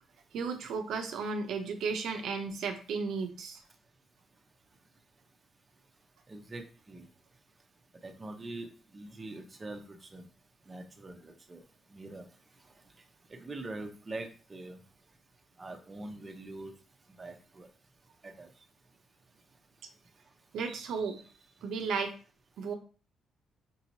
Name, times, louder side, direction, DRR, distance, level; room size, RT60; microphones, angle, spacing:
voice 1, 0.3-3.6 20.5-21.2 21.6-22.1 22.6-22.7, right 5 dB, 75° right, 4 dB, 0.7 m, -34 dB
voice 2, 6.3-7.1 8.0-10.3 10.7-11.6 11.9-12.3 13.3-14.8 15.6-16.7 17.2-17.7 18.2-18.5, right 2 dB, 25° right, 4 dB, 0.8 m, -43 dB
5.4 x 2.8 x 2.8 m, 0.37 s
cardioid pair, 90°, 0 cm